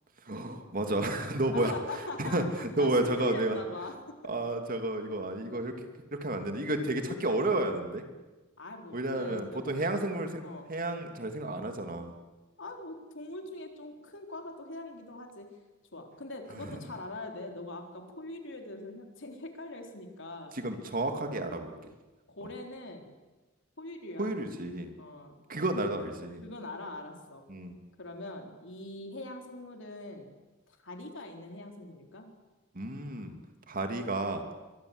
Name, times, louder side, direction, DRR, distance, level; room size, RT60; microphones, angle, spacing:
voice 1, 0.3-1.7 2.2-3.6 4.2-5.7 6.1-8.0 8.9-10.4 10.7-12.1 16.6-16.8 20.5-21.7 24.2-24.9 25.5-26.4 27.5-27.8 32.7-33.4 33.7-34.4, right 1 dB, 40° right, 6 dB, 2.7 m, -31 dB
voice 2, 1.5-2.4 2.8-3.9 4.2-4.3 8.6-10.1 10.4-10.7 12.6-15.5 15.9-20.6 22.3-23.1 23.8-24.3 25.0-25.4 26.4-27.4 28.0-30.3 30.7-32.3, left 2 dB, 60° left, 4 dB, 4.0 m, -42 dB
24.0 x 23.5 x 8.1 m, 1.2 s
head